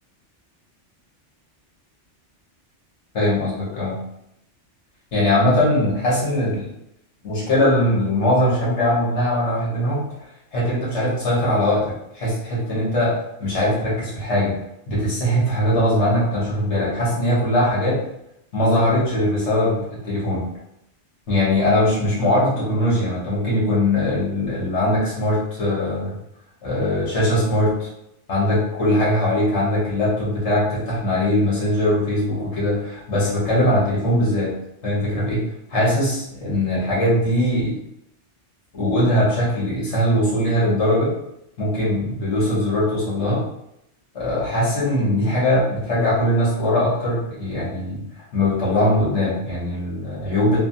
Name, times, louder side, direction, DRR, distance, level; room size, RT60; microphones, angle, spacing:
voice 1, 3.1-3.9 5.1-6.7 7.2-10.0 10.5-14.5 14.9-18.0 18.5-20.5 21.3-26.1 26.6-27.9 28.3-34.5 34.8-35.4 35.7-37.8 38.7-41.1 41.6-43.4 44.1-48.0 48.3-50.6, left 1 dB, 70° left, -6 dB, 1.5 m, -21 dB
3.4 x 2.2 x 2.6 m, 0.79 s
omnidirectional pair, 1.2 m